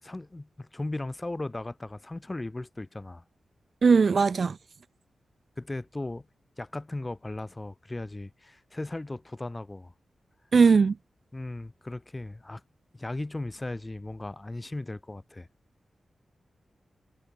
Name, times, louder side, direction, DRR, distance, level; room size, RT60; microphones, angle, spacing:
voice 1, 0.0-3.2 5.6-6.3 6.6-9.9 11.3-12.6 12.9-15.5, left 2 dB, 20° left, 4.9 m, -37 dB
voice 2, 3.8-4.6 10.5-10.9, right 5 dB, 50° right, 1.7 m, -19 dB
wide cardioid pair, 115°, 0 cm